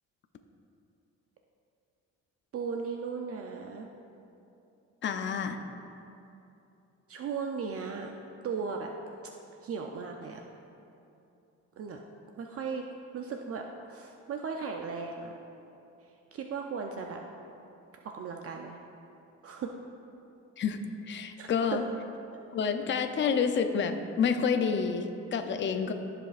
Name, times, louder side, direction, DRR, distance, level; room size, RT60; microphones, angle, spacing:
voice 1, 2.5-3.9 7.1-8.1 8.4-8.9 9.6-10.4 11.8-12.0 12.4-12.9 13.1-13.6 13.9-15.3 16.3-17.2 18.0-18.8 19.4-19.8 21.4-21.5, right 5 dB, 50° right, 2 dB, 0.5 m, -36 dB
voice 2, 5.0-5.6 20.6-20.8 21.1-21.8 22.5-25.9, left 6 dB, 40° left, 7 dB, 0.5 m, -29 dB
14.0 x 5.0 x 2.5 m, 2.8 s
cardioid pair, 90°, 30 cm